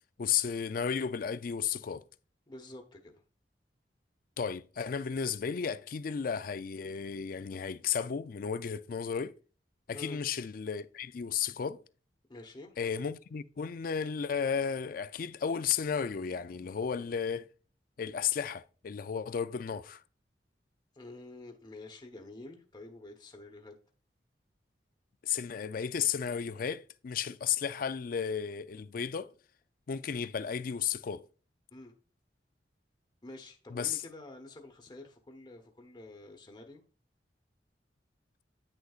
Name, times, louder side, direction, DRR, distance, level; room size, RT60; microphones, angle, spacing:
voice 1, 0.2-2.0 4.4-9.4 9.9-11.8 12.8-17.5 18.0-20.0 25.2-29.3 29.9-31.2 33.7-34.0, left 7 dB, 50° left, 0.4 m, -33 dB
voice 2, 2.5-3.2 9.9-10.2 12.3-12.8 20.9-23.7 31.7-31.9 33.2-36.8, left 2 dB, 25° left, 1.0 m, -48 dB
9.6 x 6.5 x 2.4 m
head